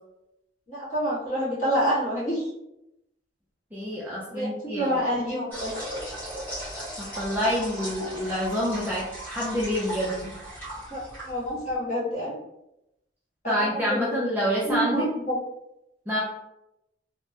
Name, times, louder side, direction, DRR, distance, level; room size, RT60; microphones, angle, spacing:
voice 1, 0.7-2.5 4.3-5.7 10.9-12.3 13.4-14.1 14.6-15.4, equal, 40° left, -9 dB, 1.5 m, -28 dB
voice 2, 3.7-5.0 7.0-10.3 13.5-15.1 16.1-16.2, equal, 10° right, -6 dB, 0.4 m, -27 dB
sound 1, 5.5-11.8, right 1 dB, 10° left, 1.2 m, -37 dB
3.2 x 2.1 x 2.7 m, 0.86 s
head